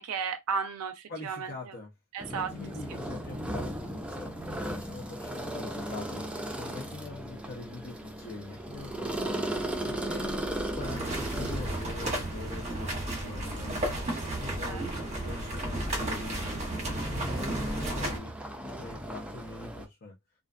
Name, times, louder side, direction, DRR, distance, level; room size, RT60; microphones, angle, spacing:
voice 1, 0.0-1.7 2.1-2.5 14.6-14.8, right 6 dB, 80° right, 0.4 m, -34 dB
voice 2, 1.1-1.9 2.3-4.3 4.7-10.4 10.8-13.9 14.4-16.4 16.9-17.6 17.9-18.3 18.8-20.2, left 3 dB, 50° left, 0.7 m, -43 dB
sound 1, 2.2-19.9, right 1 dB, 5° right, 0.4 m, -37 dB
sound 2, 8.7-18.1, equal, 70° left, 1.2 m, -43 dB
sound 3, 10.8-18.2, right 1 dB, 30° right, 1.0 m, -34 dB
2.5 x 2.2 x 2.4 m
head